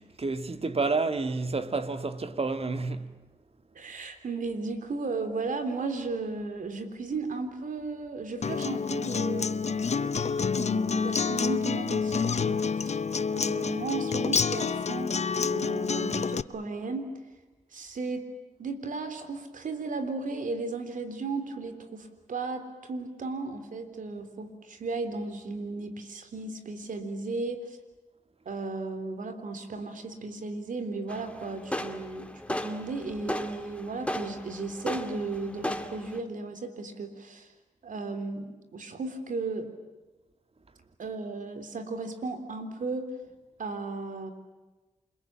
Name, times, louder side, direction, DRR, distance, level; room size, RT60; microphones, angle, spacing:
voice 1, 0.0-3.1, right 3 dB, 45° right, 2.1 m, -30 dB
voice 2, 3.7-10.2 10.5-13.0 13.3-17.1 17.7-18.2 18.6-27.8 28.5-37.5 37.8-39.7 41.0-43.1 43.6-44.3, right 3 dB, 75° right, 3.6 m, -35 dB
Acoustic guitar, 8.4-16.4, left 5 dB, 55° left, 0.8 m, -28 dB
sound 1, 31.1-36.2, left 1 dB, 10° left, 2.3 m, -36 dB
28.5 x 22.0 x 8.8 m
cardioid pair, 55°, 14 cm